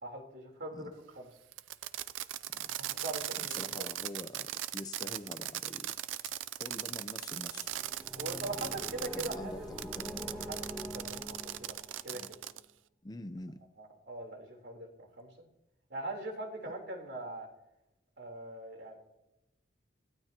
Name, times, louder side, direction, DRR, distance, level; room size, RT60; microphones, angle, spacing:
voice 1, 0.0-1.3 2.6-3.9 5.0-5.1 8.2-9.7 10.4-11.8 12.0-12.4 13.8-15.5 15.9-17.5 18.2-19.0, right 2 dB, 60° right, 3.6 m, -42 dB
Fireworks, 1.5-9.4 9.8-12.6, right 13 dB, 85° right, 0.5 m, -39 dB
voice 2, 3.4-5.9 6.6-7.7 8.5-8.7 9.1-10.2 12.1-12.3 13.0-13.6, left 1 dB, 20° left, 0.6 m, -46 dB
sound 1, 7.5-12.1, equal, 5° right, 1.8 m, -44 dB
27.0 x 15.5 x 2.9 m
head